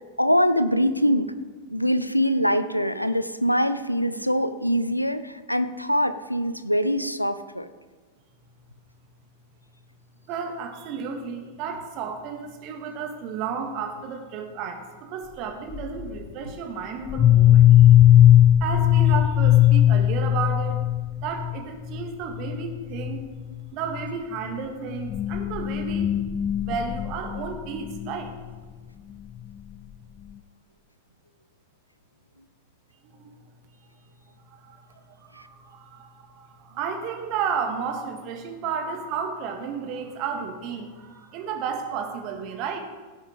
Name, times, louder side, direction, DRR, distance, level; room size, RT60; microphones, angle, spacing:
voice 1, 0.2-1.3 1.7-7.7, equal, 90° left, 12 dB, 0.6 m, -23 dB
voice 2, 10.3-17.7 18.6-20.9 21.2-23.3 23.7-26.2 26.6-28.4 33.1-33.3 34.5-42.8, right 6 dB, 40° right, 4 dB, 2.0 m, -32 dB
sound 1, 15.7-16.2 17.1-21.6 21.9-22.1 22.3-22.7 22.9-23.2 23.9-24.0 25.0-28.1, left 12 dB, 25° left, 0.4 m, -18 dB
16.5 x 7.2 x 5.2 m, 1.4 s
figure-of-eight pair, 90°, 0 cm